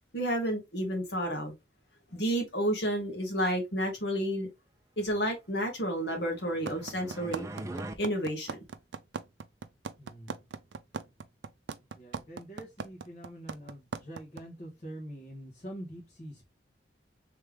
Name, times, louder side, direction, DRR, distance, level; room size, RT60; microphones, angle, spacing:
voice 1, 0.1-1.5 2.1-4.5 5.0-7.4 8.0-8.6, equal, 70° left, 1.5 m, -30 dB
sound 1, 6.0-8.0, right 1 dB, 15° right, 0.5 m, -42 dB
sound 2, 6.7-14.4, right 5 dB, 85° right, 0.5 m, -37 dB
voice 2, 10.0-10.3 11.9-16.4, right 1 dB, 40° left, 1.4 m, -45 dB
3.4 x 3.3 x 3.3 m
head